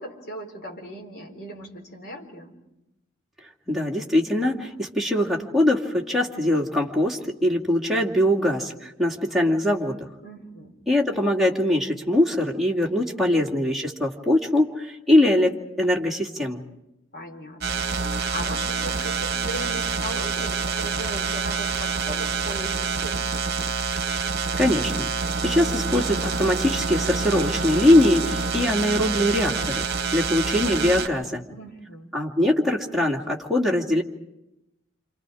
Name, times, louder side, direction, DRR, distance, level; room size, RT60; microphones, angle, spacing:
voice 1, 0.0-2.6 10.2-10.9 17.1-23.6 31.5-32.1, equal, 50° left, 1 dB, 4.2 m, -38 dB
voice 2, 3.7-9.9 10.9-16.6 24.6-25.1 25.4-29.9 30.1-31.4 32.1-34.0, left 1 dB, ahead, -2 dB, 2.4 m, -22 dB
sound 1, 17.6-31.1, right 4 dB, 50° right, 1.2 m, -27 dB
29.0 x 27.0 x 4.9 m, 0.89 s
head